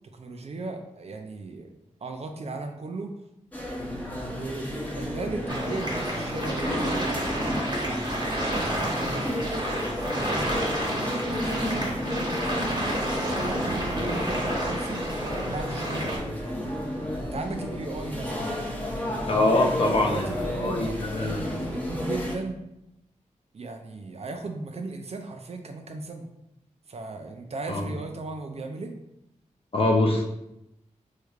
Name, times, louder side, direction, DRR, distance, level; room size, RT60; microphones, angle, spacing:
voice 1, 0.1-1.7 2.0-3.1 4.3-8.0 8.4-12.7 13.0-15.0 15.5-16.8 17.2-18.5 19.9-22.6 23.5-26.3 26.9-28.9, right 3 dB, 55° right, 5 dB, 0.4 m, -37 dB
sound 1, 3.5-22.4, left 1 dB, 10° left, 0.8 m, -32 dB
sound 2, 5.5-16.2, right 1 dB, 35° right, 1.0 m, -30 dB
voice 2, 19.3-20.3 20.6-21.5 27.7-27.8 29.7-30.2, left 2 dB, 45° left, 1 dB, 0.6 m, -23 dB
3.2 x 3.2 x 2.4 m, 0.85 s
wide cardioid pair, 65°, 13 cm